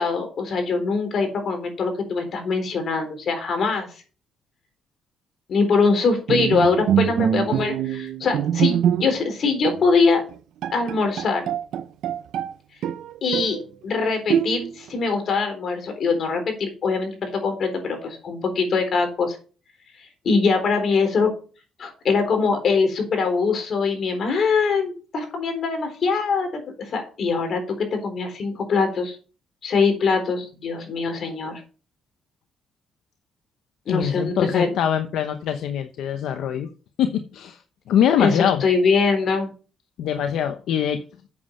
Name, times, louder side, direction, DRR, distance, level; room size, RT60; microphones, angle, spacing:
voice 1, 0.0-3.9 5.5-10.2 10.7-11.5 13.2-13.6 13.8-19.4 20.2-21.3 21.8-29.2 29.6-31.6 33.9-34.7 38.2-39.5, left 4 dB, 55° left, 5 dB, 3.9 m, -23 dB
Bowed string instrument, 6.3-9.3 9.7-9.9 10.3-10.4 10.6-12.5 12.8-13.6 14.3-14.9, right 9 dB, 80° right, 0.7 m, -24 dB
voice 2, 33.9-36.7 37.0-37.6 37.9-38.6 40.0-41.0, left 9 dB, 80° left, 8 dB, 0.8 m, -23 dB
8.4 x 7.4 x 5.5 m, 0.36 s
cardioid pair, 90°, 0 cm